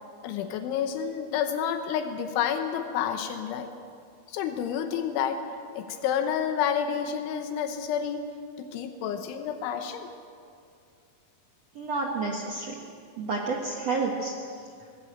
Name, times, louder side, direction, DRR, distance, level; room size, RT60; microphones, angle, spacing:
voice 1, 0.2-3.7 4.3-5.4 5.7-8.3 8.6-10.1, left 8 dB, 85° left, 7 dB, 3.4 m, -29 dB
voice 2, 11.7-12.7 13.2-14.3, right 3 dB, 70° right, -1 dB, 1.5 m, -29 dB
20.0 x 16.5 x 7.9 m, 2.3 s
omnidirectional pair, 5.4 m